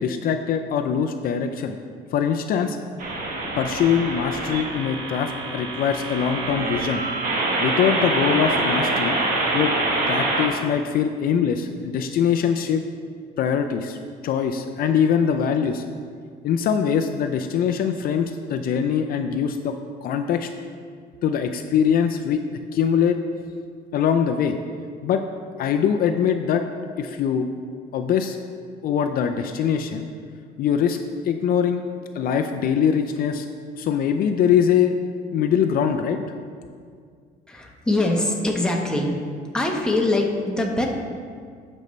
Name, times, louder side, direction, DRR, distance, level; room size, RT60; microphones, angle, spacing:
voice 1, 0.0-1.8 2.1-2.8 3.6-7.0 7.6-9.2 9.5-9.7 10.1-12.8 13.4-14.0 14.2-15.8 16.4-19.7 20.0-20.5 21.2-22.4 22.7-23.2 23.9-24.6 25.0-25.2 25.6-26.6 27.0-27.4 27.9-28.4 28.8-30.0 30.6-31.0 31.2-31.8 32.2-33.5 33.8-34.9 35.3-36.2, left 8 dB, 60° left, 6 dB, 0.5 m, -22 dB
sound 1, 3.0-10.5, right 2 dB, 55° right, 1.4 m, -25 dB
voice 2, 37.5-39.2 39.5-40.9, left 2 dB, 5° left, 0 dB, 1.0 m, -23 dB
12.0 x 5.4 x 3.2 m, 2.1 s
cardioid pair, 110°, 17 cm